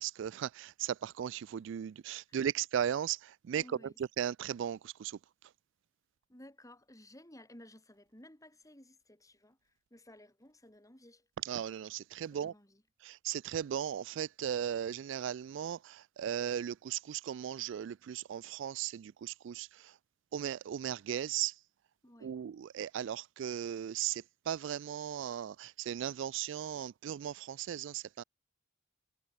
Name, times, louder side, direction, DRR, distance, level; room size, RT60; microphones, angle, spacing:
voice 1, 0.0-3.2 3.5-3.6 4.2-5.1 11.5-12.5 13.1-19.7 20.3-21.5 22.2-28.2, right 9 dB, 70° right, 0.3 m, -37 dB
voice 2, 3.5-4.0 6.3-11.3 12.3-12.8 22.0-22.4, left 1 dB, 15° left, 5.8 m, -56 dB
head